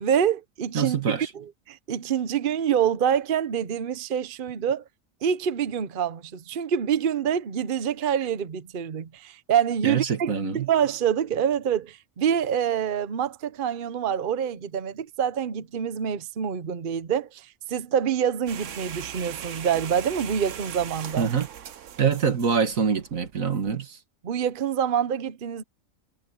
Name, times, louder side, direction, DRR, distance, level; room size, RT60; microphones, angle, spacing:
voice 1, 0.0-4.8 5.2-21.3 24.2-25.6, right 8 dB, 45° right, 0.9 m, -26 dB
voice 2, 0.7-1.3 9.8-10.7 21.2-21.5 22.0-24.0, right 6 dB, 85° right, 2.1 m, -25 dB
sound 1, 18.5-23.7, right 9 dB, 70° right, 1.2 m, -40 dB
omnidirectional pair, 1.4 m